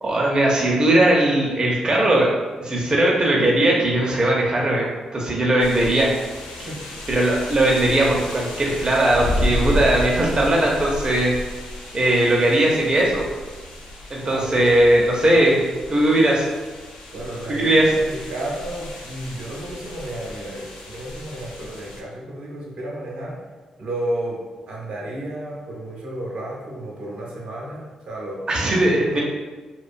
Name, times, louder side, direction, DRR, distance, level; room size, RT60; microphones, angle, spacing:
voice 1, 0.0-2.3 2.6-6.1 7.1-11.3 11.9-13.2 14.1-15.5 15.9-16.5 17.5-17.9 28.5-29.2, right 1 dB, 40° right, -3 dB, 0.5 m, -19 dB
sound 1, 5.6-22.0, left 1 dB, 90° left, 0.4 m, -32 dB
voice 2, 14.1-14.8 15.3-15.7 17.1-23.4 23.8-24.4 24.7-28.4 29.0-29.2, right 1 dB, 75° right, -4 dB, 0.7 m, -32 dB
2.4 x 2.2 x 2.4 m, 1.3 s
supercardioid pair, 45°, 2 cm